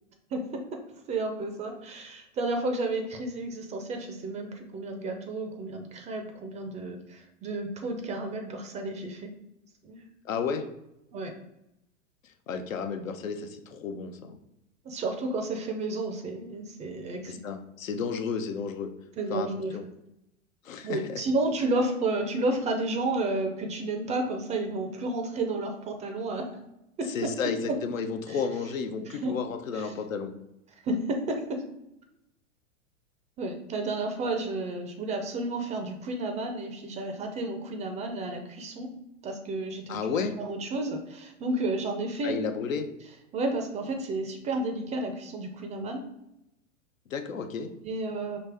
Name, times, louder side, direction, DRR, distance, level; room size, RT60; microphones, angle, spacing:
voice 1, 1.1-9.3 9.8-10.0 11.1-11.3 14.8-17.5 19.2-19.8 20.8-26.5 27.0-27.1 27.7-27.8 28.3-28.4 29.1-29.4 29.7-29.9 30.8-31.6 33.4-38.9 39.2-42.4 43.3-46.1 47.8-48.4, right 2 dB, 20° right, 5 dB, 0.4 m, -31 dB
voice 2, 10.2-10.6 12.5-14.4 17.3-18.9 19.3-19.5 19.7-19.8 20.6-21.2 27.1-30.3 39.9-40.3 42.2-42.9 47.1-47.7, left 6 dB, 85° left, 7 dB, 0.7 m, -32 dB
5.1 x 2.8 x 3.3 m, 0.86 s
hypercardioid pair, 110°, 39 cm